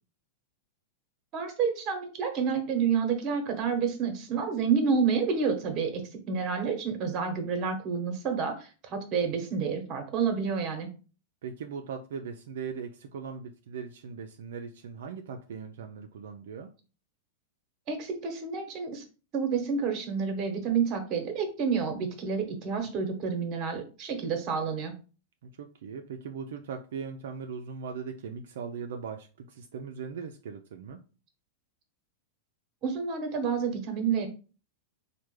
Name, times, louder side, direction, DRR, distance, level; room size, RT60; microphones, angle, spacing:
voice 1, 1.3-6.0 6.3-10.9 17.9-19.0 19.3-24.9 32.8-34.3, right 6 dB, 40° right, 5 dB, 1.0 m, -29 dB
voice 2, 11.4-16.7 25.4-31.0, right 6 dB, 75° right, 4 dB, 0.3 m, -39 dB
3.2 x 2.1 x 3.1 m, 0.35 s
hypercardioid pair, 125°, 0 cm